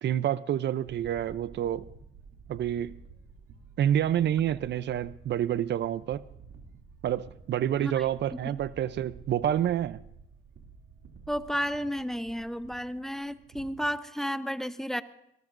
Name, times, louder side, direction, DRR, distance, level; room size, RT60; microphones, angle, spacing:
voice 1, 0.0-1.8 2.5-2.9 3.8-6.2 7.0-10.0, right 10 dB, 60° right, 0.6 m, -28 dB
sound 1, 0.8-13.9, right 5 dB, 90° right, 2.7 m, -51 dB
voice 2, 11.3-15.0, equal, ahead, 0.8 m, -32 dB
22.0 x 19.5 x 2.6 m
cardioid pair, 90°, 20 cm